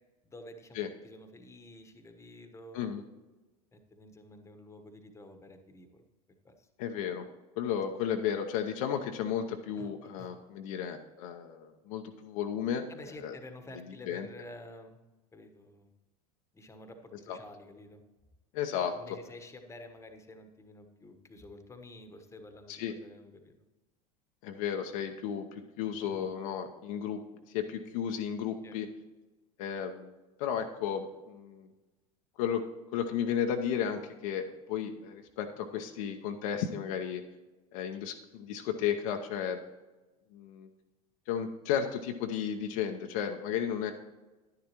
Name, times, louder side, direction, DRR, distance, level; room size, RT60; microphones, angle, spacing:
voice 1, 0.2-2.8 3.7-6.0 6.4-6.7 9.8-9.9 10.2-10.3 12.9-15.0 15.3-15.9 16.5-18.0 18.9-23.5 26.0-26.3 28.6-28.8, left 1 dB, 15° left, 7 dB, 1.1 m, -50 dB
voice 2, 6.8-7.3 7.6-12.8 13.2-13.4 14.1-14.3 17.3-17.4 18.5-18.9 22.7-22.9 24.4-27.2 27.5-28.9 29.6-30.1 30.4-31.7 32.4-32.6 32.9-37.2 37.7-39.6 40.3-40.7 41.3-43.9, left 8 dB, 60° left, 5 dB, 0.8 m, -33 dB
10.5 x 10.5 x 3.0 m, 1.1 s
hypercardioid pair, 80°, 20 cm